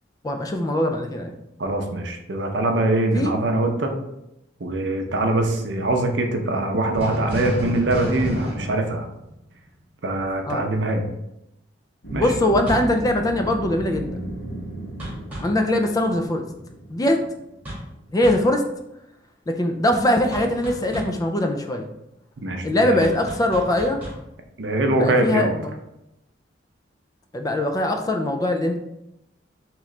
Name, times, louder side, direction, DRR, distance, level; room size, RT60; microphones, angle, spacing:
voice 1, 0.2-1.3 3.1-3.3 10.5-10.6 12.2-14.3 15.4-16.4 16.9-17.2 18.1-18.6 19.5-21.9 22.6-24.0 24.9-25.7 27.3-28.8, left 1 dB, 20° left, 4 dB, 0.3 m, -22 dB
voice 2, 1.6-3.9 4.6-9.1 10.0-11.0 12.1-12.3 22.4-23.1 24.6-25.5, right 2 dB, 65° right, 3 dB, 0.6 m, -23 dB
sound 1, 6.9-9.8 12.7-13.0 15.0-15.6 17.6-17.9 18.2-18.5 20.3-21.2 23.0-24.3, equal, 10° right, 1.4 m, -32 dB
sound 2, 12.0-18.3, right 1 dB, 70° left, 1.4 m, -35 dB
3.7 x 3.0 x 3.2 m, 0.85 s
head